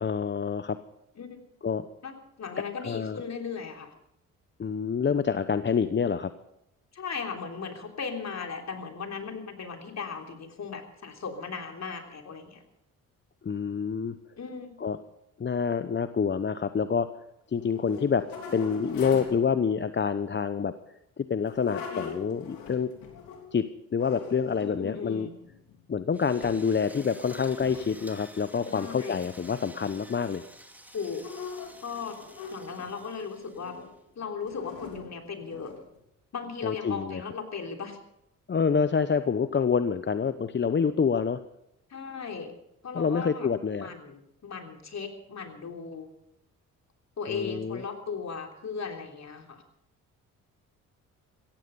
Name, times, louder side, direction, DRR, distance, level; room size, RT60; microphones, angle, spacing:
voice 1, 0.0-0.8 1.6-1.9 2.8-3.2 4.6-6.3 13.4-14.1 14.8-15.0 15.4-17.1 17.5-18.2 18.5-20.7 21.2-22.9 23.5-23.6 23.9-25.3 25.9-30.4 36.6-37.2 38.5-41.4 42.9-43.9 47.3-47.8, left 6 dB, 30° left, 12 dB, 0.9 m, -27 dB
voice 2, 2.0-3.9 6.9-12.6 14.4-14.8 21.7-22.1 24.6-25.3 28.7-29.2 30.9-31.3 31.8-32.2 32.5-33.8 34.1-35.7 36.3-38.0 41.9-42.5 42.8-43.5 43.8-46.1 47.2-49.6, left 5 dB, 50° left, 4 dB, 3.3 m, -37 dB
sound 1, 17.6-19.5 21.4-23.5 24.0-24.9 25.4-26.0 26.4-26.8 27.0-28.2 28.7-28.9 31.0-33.0 33.6-34.0 34.4-36.0, left 6 dB, 75° left, 3.3 m, -43 dB
Drill, 26.1-34.0, right 1 dB, 5° right, 2.5 m, -51 dB
16.5 x 15.0 x 5.4 m, 0.82 s
supercardioid pair, 55°, 35 cm